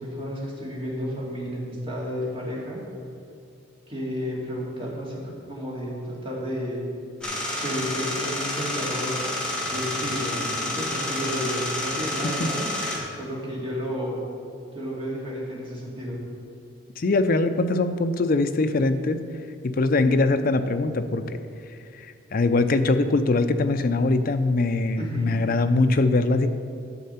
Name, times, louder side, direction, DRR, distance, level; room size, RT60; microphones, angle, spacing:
voice 1, 0.0-2.8 3.9-5.2 5.5-6.8 7.6-9.2 9.7-12.7 13.2-14.2 14.7-16.2 25.0-25.3, equal, 25° right, -5 dB, 2.5 m, -31 dB
sound 1, 7.2-13.0, left 1 dB, 5° left, 1.6 m, -29 dB
voice 2, 12.8-13.2 17.0-19.2 19.6-21.4 22.0-26.5, left 2 dB, 45° left, 9 dB, 0.5 m, -22 dB
11.0 x 6.5 x 5.7 m, 2.6 s
head